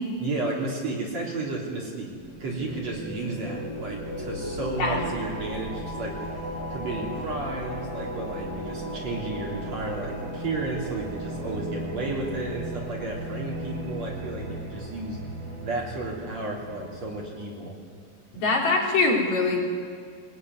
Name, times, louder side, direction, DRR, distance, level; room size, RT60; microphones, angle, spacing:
voice 1, 0.2-2.1 2.4-6.3 6.7-15.2 15.6-17.7, right 2 dB, 50° right, -3 dB, 4.3 m, -33 dB
sound 1, 2.1-17.5, equal, 30° right, 3.9 m, -36 dB
voice 2, 18.3-19.6, left 3 dB, 50° left, -1 dB, 4.8 m, -23 dB
21.5 x 21.5 x 9.6 m, 2.1 s
omnidirectional pair, 4.1 m